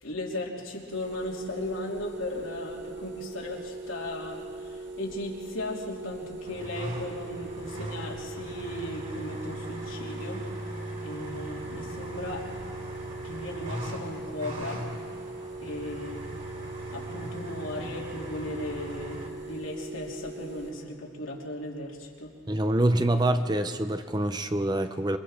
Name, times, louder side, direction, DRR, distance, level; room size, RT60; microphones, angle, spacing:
voice 1, 0.0-10.4 11.0-12.5 13.2-14.8 15.6-16.2 16.9-22.3, left 1 dB, 90° left, -2 dB, 3.2 m, -36 dB
sound 1, 0.9-20.7, right 2 dB, 55° right, 2.4 m, -41 dB
sound 2, 6.4-19.3, right 1 dB, 40° right, 3.2 m, -40 dB
voice 2, 22.5-25.2, right 1 dB, 20° right, 9 dB, 0.7 m, -25 dB
27.5 x 24.0 x 4.4 m, 2.1 s
head